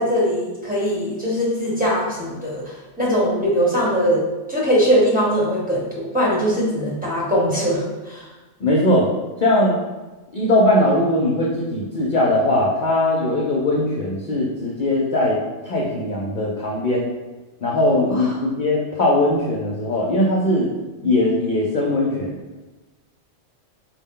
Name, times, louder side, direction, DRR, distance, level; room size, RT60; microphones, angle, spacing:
voice 1, 0.0-2.6 3.0-4.2 4.5-8.3 18.0-18.2, equal, 10° right, -6 dB, 1.0 m, -21 dB
voice 2, 8.6-9.1 9.4-9.8 10.3-17.1 17.6-20.7 21.0-22.4, left 1 dB, 55° left, -3 dB, 0.6 m, -20 dB
4.7 x 2.1 x 3.6 m, 1.2 s
omnidirectional pair, 1.2 m